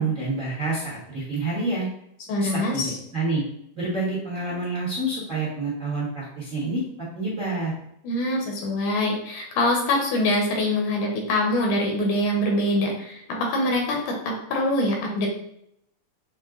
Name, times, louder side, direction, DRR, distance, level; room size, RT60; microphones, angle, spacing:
voice 1, 0.0-1.9 2.4-3.4 3.7-6.8 7.1-7.7, right 2 dB, 50° right, -8 dB, 0.8 m, -28 dB
voice 2, 2.3-3.0 8.0-15.3, left 1 dB, 75° left, 0 dB, 2.1 m, -24 dB
6.3 x 2.2 x 3.6 m, 0.76 s
omnidirectional pair, 3.9 m